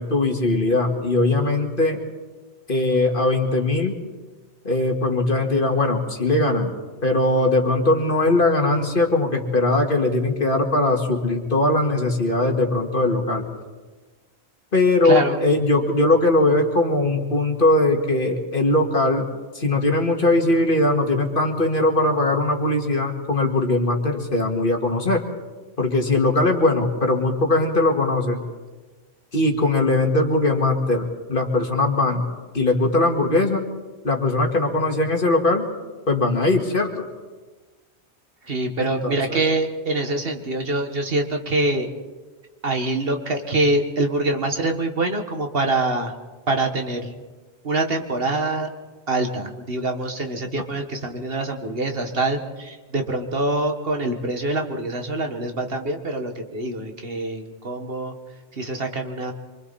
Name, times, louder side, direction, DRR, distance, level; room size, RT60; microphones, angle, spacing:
voice 1, 0.0-2.0 2.7-4.0 4.6-6.7 7.0-13.5 14.7-19.3 19.5-25.2 25.8-28.4 29.3-32.2 32.5-33.7 34.0-35.7 36.1-37.1 38.8-39.4, left 2 dB, 50° left, 2 dB, 2.3 m, -20 dB
voice 2, 15.0-15.4 38.4-41.9 42.6-46.1 46.5-47.1 47.6-48.7 49.1-58.1 58.5-59.3, right 2 dB, 60° right, 4 dB, 1.9 m, -25 dB
26.0 x 24.5 x 4.2 m, 1.3 s
omnidirectional pair, 1.1 m